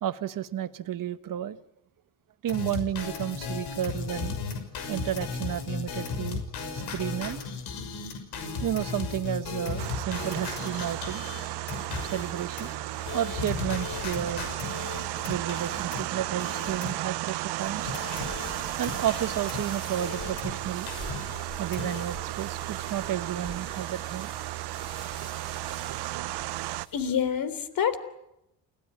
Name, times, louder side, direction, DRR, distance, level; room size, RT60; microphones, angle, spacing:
voice 1, 0.0-1.6 2.4-4.4 4.9-6.4 6.7-7.5 8.6-11.3 12.1-12.7 13.1-14.6 15.3-17.9 18.8-20.9 21.6-24.3, right 11 dB, 55° right, 12 dB, 1.4 m, -32 dB
sound 1, 2.5-17.3 17.5-20.6 20.9-22.0, left 5 dB, 80° left, 6.3 m, -36 dB
sound 2, 9.8-26.9, right 17 dB, 75° right, 0.9 m, -34 dB
sound 3, 17.5-27.0, left 1 dB, 10° left, 7.3 m, -46 dB
voice 2, 26.9-28.0, left 8 dB, 60° left, 13 dB, 3.6 m, -27 dB
29.0 x 18.5 x 9.5 m, 0.86 s
cardioid pair, 100°, 39 cm